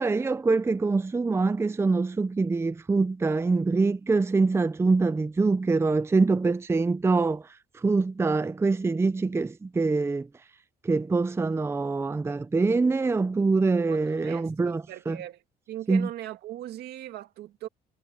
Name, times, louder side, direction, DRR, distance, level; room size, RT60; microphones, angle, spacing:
voice 1, 0.0-7.4 7.8-10.3 10.8-15.2 15.9-16.1, right 3 dB, 15° right, 0.6 m, -24 dB
voice 2, 13.9-15.4 15.7-17.7, right 13 dB, 75° right, 2.0 m, -39 dB
cardioid pair, 110°, 17 cm